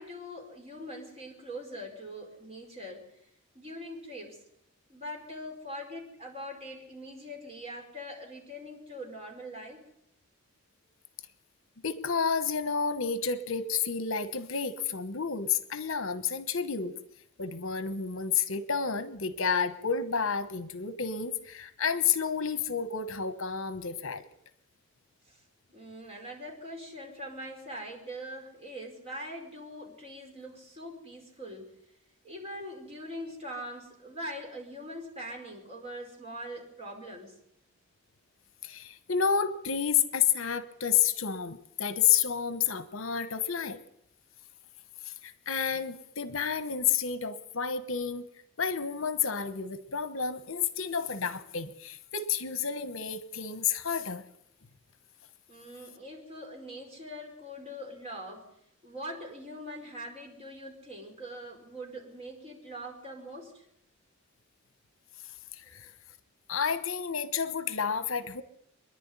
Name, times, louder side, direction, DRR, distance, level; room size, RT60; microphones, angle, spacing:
voice 1, 0.0-3.0 3.5-4.4 4.9-9.8 25.2-25.4 25.7-31.7 32.2-37.3 55.5-58.5 58.8-63.7 65.6-65.9, equal, 30° right, 1 dB, 4.9 m, -42 dB
voice 2, 11.8-17.0 17.4-24.2 38.6-43.8 45.2-48.3 48.6-54.2 66.5-68.4, left 7 dB, 70° left, 12 dB, 1.2 m, -30 dB
25.5 x 10.5 x 9.7 m, 0.74 s
head